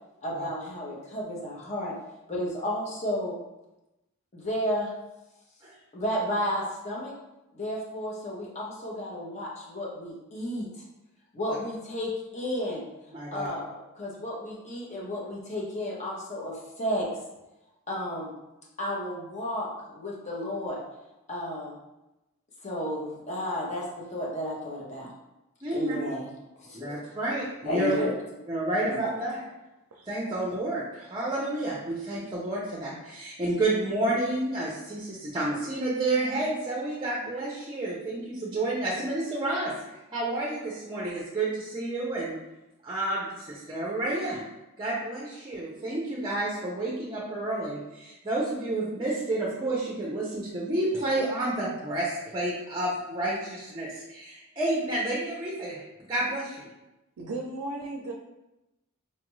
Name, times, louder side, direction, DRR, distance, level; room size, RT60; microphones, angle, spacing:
voice 1, 0.2-2.0 2.3-3.4 4.3-4.9 5.9-7.1 7.5-10.7 11.3-12.8 13.3-17.1 17.9-18.3 18.8-20.8 21.3-21.7 22.6-25.1 25.7-26.2 26.6-27.0 27.7-28.1 28.8-29.1, equal, 30° left, -4 dB, 0.8 m, -32 dB
voice 2, 13.1-13.5 25.6-26.0 26.7-28.0 28.5-29.4 30.1-39.7 40.1-42.4 42.8-44.4 44.8-55.8 56.1-56.7, right 2 dB, 20° right, -4 dB, 0.6 m, -30 dB
voice 3, 57.2-58.1, right 2 dB, 85° right, 0 dB, 0.5 m, -35 dB
4.4 x 2.4 x 3.0 m, 0.97 s
head